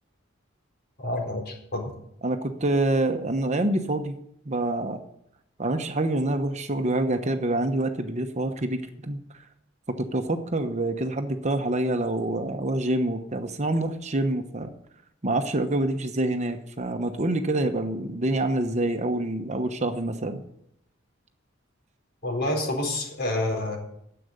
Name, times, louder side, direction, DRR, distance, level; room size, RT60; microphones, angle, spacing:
voice 1, 1.0-1.9 22.2-23.8, left 1 dB, 55° left, 1 dB, 4.3 m, -28 dB
voice 2, 2.2-4.1 4.5-5.0 5.6-9.2 10.0-14.7 15.2-20.4, right 2 dB, 35° right, 7 dB, 1.0 m, -26 dB
10.5 x 7.9 x 9.5 m, 0.74 s
head